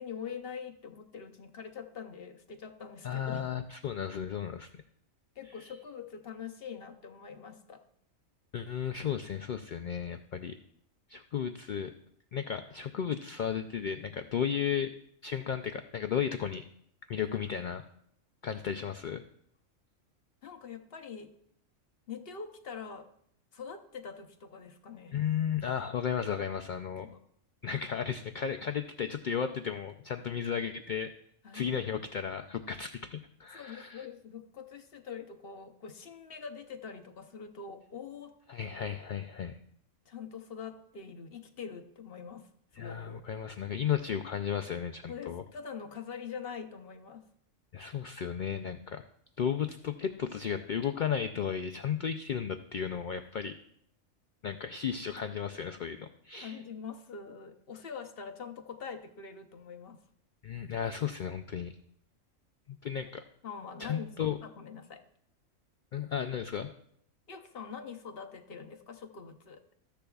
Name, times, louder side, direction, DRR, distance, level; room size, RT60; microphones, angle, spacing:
voice 1, 0.0-3.4 5.4-7.8 20.4-21.3 22.1-23.1 23.5-25.2 27.0-27.2 31.4-31.8 33.5-38.3 40.1-43.2 45.1-47.2 56.4-60.0 63.4-65.0 67.3-69.6, left 6 dB, 50° left, 7 dB, 0.9 m, -44 dB
voice 2, 3.0-4.7 8.5-10.6 11.1-11.9 12.3-14.9 15.2-16.6 17.1-17.8 18.4-19.2 25.1-27.1 27.6-31.1 31.5-34.1 38.5-39.6 42.8-45.4 47.7-49.0 49.4-53.5 54.4-56.6 60.4-61.7 62.8-63.2 63.8-64.4 65.9-66.7, left 8 dB, 70° left, 7 dB, 0.4 m, -34 dB
14.0 x 10.0 x 2.3 m, 0.70 s
omnidirectional pair, 1.3 m